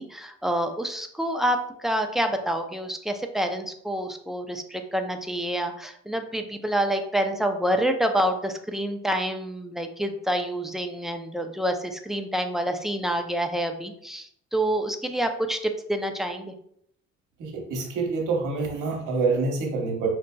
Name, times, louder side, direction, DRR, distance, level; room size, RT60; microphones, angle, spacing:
voice 1, 0.0-16.5, right 1 dB, ahead, 5 dB, 0.4 m, -27 dB
voice 2, 17.4-20.1, right 4 dB, 85° right, 0 dB, 1.1 m, -26 dB
5.0 x 2.6 x 2.2 m, 0.69 s
cardioid pair, 90°, 30 cm